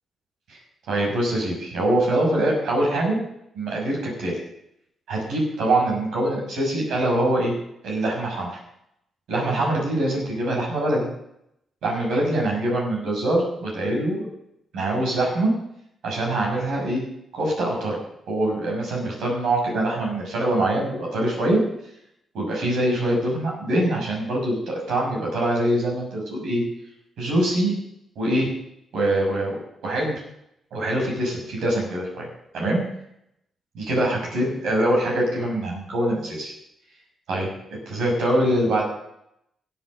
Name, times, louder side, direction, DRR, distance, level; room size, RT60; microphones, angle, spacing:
voice 1, 0.9-3.2 3.5-4.4 5.1-7.5 7.8-8.6 9.3-11.1 11.8-14.3 14.7-15.5 16.0-17.0 17.3-18.0 18.3-21.6 22.3-26.6 27.2-27.7 28.2-28.5 28.9-29.6 29.8-30.1 30.7-32.3 32.5-32.8 33.7-36.5 37.3-37.5 37.9-38.9, right 1 dB, 70° right, -1 dB, 5.9 m, -23 dB
16.0 x 8.0 x 6.6 m, 0.79 s
hypercardioid pair, 40°, 0 cm